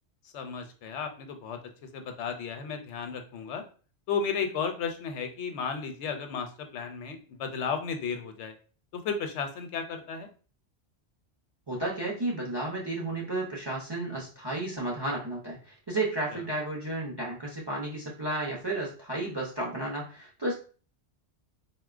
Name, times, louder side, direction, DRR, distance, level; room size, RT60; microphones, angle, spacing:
voice 1, 0.3-1.6 1.9-3.6 4.1-8.5 8.9-10.3 16.3-16.4, left 6 dB, 85° left, 6 dB, 0.9 m, -34 dB
voice 2, 11.7-20.5, right 2 dB, 30° right, -3 dB, 0.5 m, -32 dB
4.1 x 2.1 x 2.3 m, 0.38 s
omnidirectional pair, 1.2 m